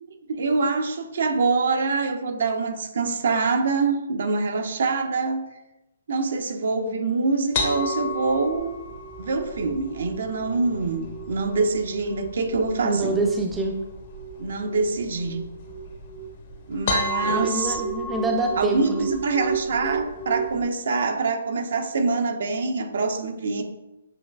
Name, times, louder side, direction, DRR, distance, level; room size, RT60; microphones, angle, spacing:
voice 1, 0.3-5.4 6.1-8.8 9.2-13.1 14.4-15.4 16.7-17.8 18.6-23.6, right 4 dB, 65° right, 5 dB, 0.7 m, -25 dB
sound 1, 7.5-20.6, right 1 dB, 50° left, 0.9 m, -32 dB
voice 2, 12.8-13.7 17.2-19.1, right 2 dB, 10° right, 1 dB, 0.5 m, -26 dB
7.5 x 3.1 x 2.3 m, 0.95 s
hypercardioid pair, 140°, 0 cm